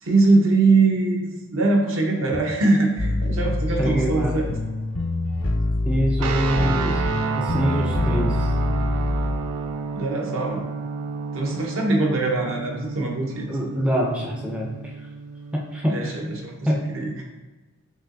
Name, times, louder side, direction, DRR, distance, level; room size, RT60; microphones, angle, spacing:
voice 1, 0.0-4.6 9.9-10.6 11.3-13.6 15.8-17.2, right 3 dB, 65° right, 0 dB, 0.8 m, -22 dB
sound 1, 3.0-9.4, left 2 dB, 65° left, 0.5 m, -25 dB
voice 2, 3.5-4.3 5.8-7.0 7.3-8.8 13.5-14.9 15.5-16.1 16.7-16.8, equal, 5° right, -2 dB, 0.4 m, -25 dB
sound 2, 6.2-16.5, right 5 dB, 90° right, 0.4 m, -31 dB
5.5 x 2.9 x 2.5 m, 1.2 s
head